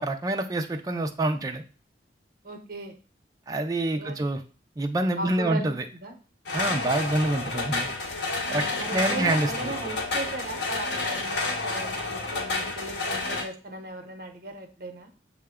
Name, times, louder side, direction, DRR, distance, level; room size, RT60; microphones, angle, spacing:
voice 1, 0.0-1.6 3.5-4.4 4.8-5.8 6.5-7.9 8.5-8.6 8.9-9.7, right 2 dB, 20° right, 5 dB, 0.3 m, -26 dB
voice 2, 2.4-2.9 3.9-4.2 5.2-5.7 6.0-6.2 8.4-15.1, right 2 dB, 50° right, 5 dB, 0.8 m, -37 dB
sound 1, 6.5-13.4, left 3 dB, 85° left, 0.8 m, -30 dB
6.5 x 2.2 x 3.5 m, 0.36 s
head